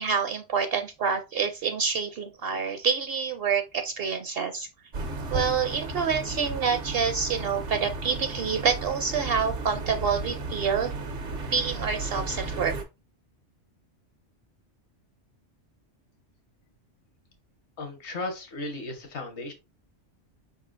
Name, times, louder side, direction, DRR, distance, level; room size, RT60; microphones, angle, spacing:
voice 1, 0.0-4.7 5.3-10.9 11.5-12.7, right 6 dB, 60° right, 0.7 m, -27 dB
sound 1, 4.9-12.8, right 3 dB, 85° right, 1.3 m, -34 dB
voice 2, 17.8-19.5, left 2 dB, 65° left, 1.4 m, -35 dB
4.9 x 4.2 x 2.5 m
omnidirectional pair, 1.2 m